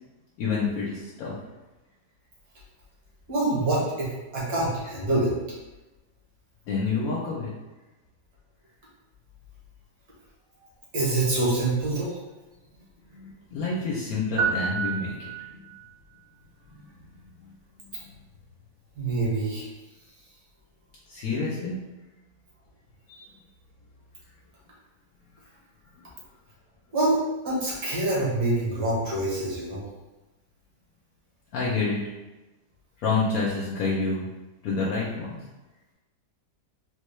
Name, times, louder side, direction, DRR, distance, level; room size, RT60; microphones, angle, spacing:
voice 1, 0.4-1.4 6.7-7.5 13.1-15.6 16.7-16.9 17.8-17.9 21.1-21.8 23.1-23.3 26.0-26.1 31.5-32.0 33.0-34.3 34.6-35.4, left 4 dB, 70° left, -5 dB, 1.0 m, -28 dB
voice 2, 3.3-5.3 10.9-12.2 19.0-19.7 26.9-29.8, right 2 dB, 70° right, -6 dB, 1.7 m, -26 dB
sound 1, 14.4-15.8, right 6 dB, 55° right, 0.7 m, -29 dB
4.1 x 2.2 x 3.1 m, 1.1 s
omnidirectional pair, 1.7 m